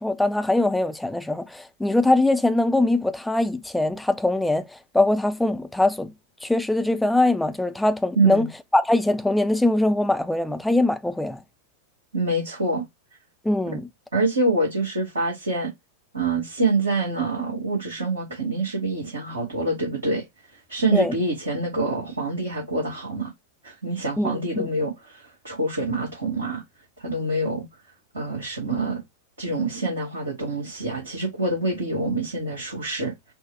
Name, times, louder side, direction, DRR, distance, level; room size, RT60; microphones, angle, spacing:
voice 1, 0.0-6.1 6.4-8.5 8.7-11.4 13.4-13.9 20.9-21.1 24.2-24.7, left 2 dB, 5° left, 0.4 m, -22 dB
voice 2, 8.1-8.5 12.1-12.8 14.1-15.7 16.1-20.2 20.7-23.3 23.6-26.6 27.0-27.6 28.1-29.0 29.4-33.1, right 2 dB, 75° right, 1.6 m, -26 dB
4.4 x 2.0 x 4.4 m
figure-of-eight pair, 90°, 0 cm